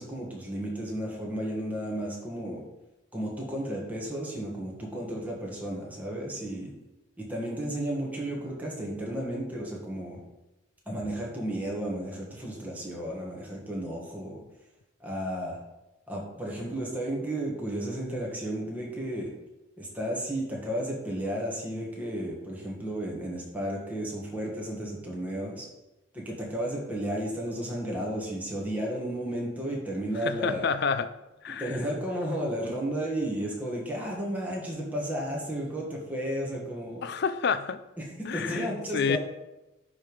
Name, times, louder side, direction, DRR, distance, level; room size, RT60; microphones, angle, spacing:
voice 1, 0.0-2.6 3.1-6.7 7.2-10.2 10.9-14.4 15.0-15.6 16.1-19.3 19.8-25.7 26.1-30.7 31.5-37.1 38.0-39.2, right 1 dB, 10° right, 1.7 m, -33 dB
voice 2, 30.2-31.1 31.4-31.7 37.0-37.8 38.3-39.2, left 6 dB, 55° left, 0.4 m, -28 dB
10.5 x 3.6 x 4.8 m
head